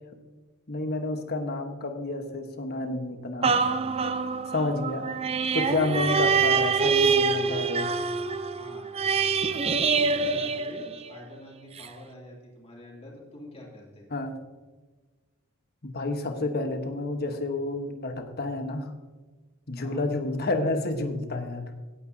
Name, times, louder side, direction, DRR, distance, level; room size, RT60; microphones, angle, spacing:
voice 1, 0.7-3.6 4.5-5.1 5.5-7.9 14.1-14.3 15.8-18.9 19.7-21.7, left 2 dB, 45° left, 6 dB, 1.2 m, -30 dB
sound 1, 3.4-11.3 11.8-11.9, right 5 dB, 25° right, 0.5 m, -25 dB
voice 2, 8.6-8.9 9.5-14.1 19.8-20.1, left 1 dB, 25° left, -3 dB, 2.7 m, -46 dB
17.0 x 8.7 x 2.7 m, 1.3 s
head